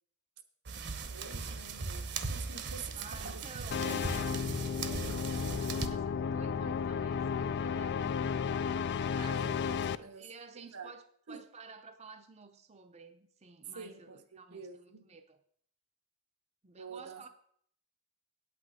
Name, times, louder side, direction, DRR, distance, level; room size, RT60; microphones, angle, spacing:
sound 1, 0.7-5.9, right 4 dB, 55° right, 0.9 m, -39 dB
voice 1, 1.0-3.4 3.8-4.1 4.8-5.2 9.2-10.3 10.6-10.9 11.3-11.4 13.7-15.1 16.8-17.3, right 4 dB, 90° right, 1.2 m, -47 dB
voice 2, 3.0-9.2 9.8-14.7 15.0-15.4 16.6-17.3, right 4 dB, 30° right, 0.6 m, -52 dB
sound 2, 3.7-10.0, left 6 dB, 50° left, 0.4 m, -33 dB
8.7 x 8.5 x 4.9 m
head